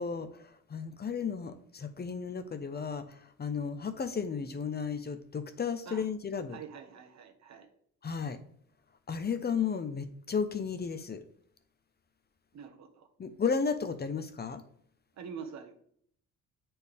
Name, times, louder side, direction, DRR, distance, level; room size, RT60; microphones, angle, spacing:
voice 1, 0.0-6.6 8.0-8.4 9.1-11.2 13.2-14.6, left 6 dB, 35° left, 10 dB, 0.7 m, -34 dB
voice 2, 6.5-7.7 12.5-13.1 15.2-15.7, right 6 dB, 65° right, 6 dB, 1.2 m, -45 dB
8.2 x 4.4 x 3.5 m, 0.64 s
cardioid pair, 90°, 30 cm